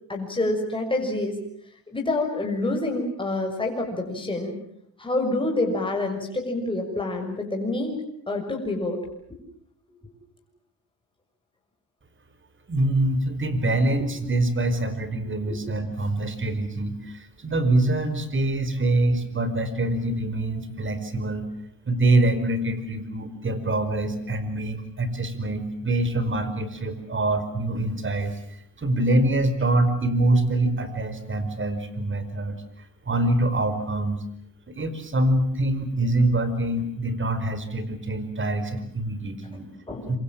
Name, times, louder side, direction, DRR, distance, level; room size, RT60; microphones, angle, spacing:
voice 1, 0.1-1.4 1.9-4.6 5.0-9.0 15.4-15.6 39.9-40.2, left 2 dB, 15° left, 1 dB, 6.4 m, -27 dB
voice 2, 12.7-21.5 21.9-28.4 28.8-32.6 33.0-34.2 34.7-39.7 40.1-40.2, right 2 dB, 35° right, 12 dB, 5.0 m, -25 dB
27.0 x 25.0 x 7.5 m, 0.69 s
cardioid pair, 90°, 35 cm